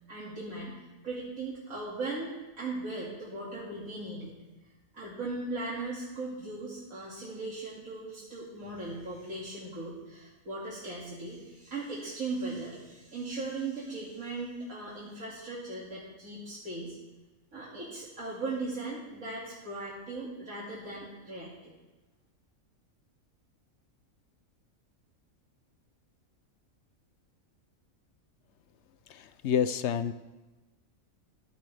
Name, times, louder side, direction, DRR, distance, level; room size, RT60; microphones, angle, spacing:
voice 1, 0.1-4.3 4.9-16.9 17.5-21.7, right 2 dB, 75° right, -6 dB, 3.0 m, -38 dB
voice 2, 29.1-30.1, left 8 dB, 65° left, 13 dB, 0.9 m, -29 dB
14.5 x 14.5 x 3.5 m, 1.1 s
omnidirectional pair, 1.4 m